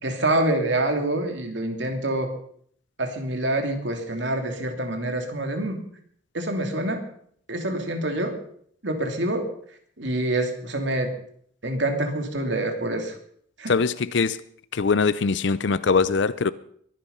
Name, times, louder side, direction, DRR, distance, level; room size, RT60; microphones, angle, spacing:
voice 1, 0.0-2.3 3.0-5.8 6.3-7.0 7.5-8.4 8.8-9.5 10.0-11.1 11.6-13.1 13.6-13.7, right 1 dB, 65° right, 2.8 m, -26 dB
voice 2, 13.7-14.4 14.7-16.5, left 4 dB, 65° left, 0.5 m, -22 dB
23.0 x 10.5 x 5.6 m
head